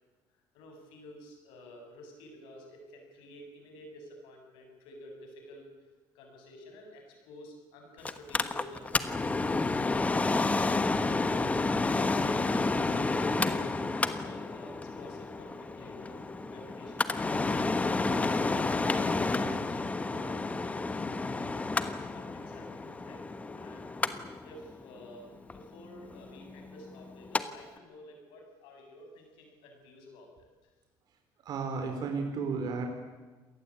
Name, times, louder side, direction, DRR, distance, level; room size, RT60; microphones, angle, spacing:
voice 1, 0.5-5.7 6.1-9.1 11.7-21.0 21.3-23.9 24.4-30.5, left 1 dB, 90° left, 3 dB, 7.3 m, -51 dB
Mechanical fan, 8.0-27.4 27.8-27.9, left 3 dB, 15° left, 1.3 m, -30 dB
voice 2, 31.4-32.9, right 4 dB, 55° right, 4 dB, 4.0 m, -33 dB
27.0 x 19.0 x 8.6 m, 1.3 s
cardioid pair, 120°, 8 cm